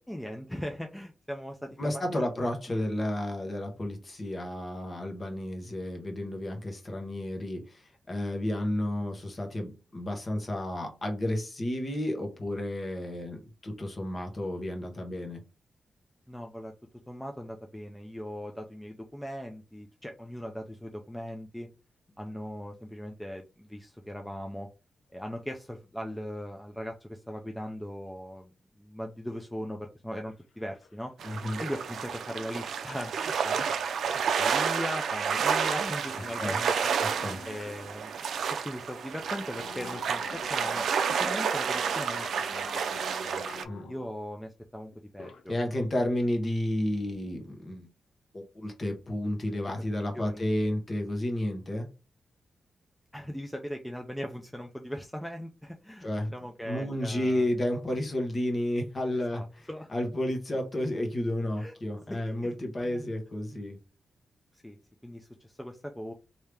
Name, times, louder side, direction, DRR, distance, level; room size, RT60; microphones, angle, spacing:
voice 1, 0.0-2.3 2.7-2.8 16.3-16.7 17.1-21.7 22.2-24.7 25.1-28.5 28.8-31.1 31.6-38.2 38.6-43.4 43.9-45.5 50.1-50.4 53.1-57.5 59.3-59.9 61.6-61.7 62.1-62.5 62.8-63.1 64.5-64.8 65.0-66.1, equal, 5° left, 0.4 m, -39 dB
voice 2, 1.8-15.4 31.2-31.6 36.4-36.6 37.0-37.4 43.6-43.9 45.5-47.9 48.3-51.9 56.0-56.3 56.6-63.8, left 1 dB, 30° left, 1.0 m, -32 dB
sound 1, 30.3-30.4 30.6-31.4 33.0-33.1 33.5-38.0 38.5-38.6 39.2-44.1 44.9-45.4 45.8-46.1, left 5 dB, 75° left, 0.6 m, -47 dB
sound 2, 31.2-43.6, right 6 dB, 85° right, 0.4 m, -30 dB
3.2 x 2.7 x 3.4 m
wide cardioid pair, 135°, 0 cm